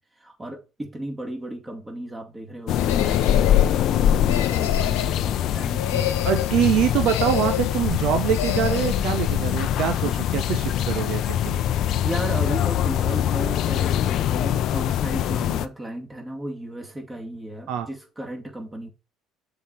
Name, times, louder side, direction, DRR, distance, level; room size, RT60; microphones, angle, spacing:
voice 1, 0.2-6.2 12.0-18.9, right 1 dB, 20° right, 2.6 m, -35 dB
sound 1, 2.7-15.7, left 11 dB, 60° left, 0.6 m, -23 dB
sound 2, 2.8-3.7 4.2-5.2 5.7-6.6 7.0-7.8 8.3-9.0, left 10 dB, 80° left, 1.0 m, -30 dB
voice 2, 6.2-11.6 17.7-17.9, right 9 dB, 65° right, 0.9 m, -24 dB
7.2 x 4.3 x 5.4 m
hypercardioid pair, 60°, 0 cm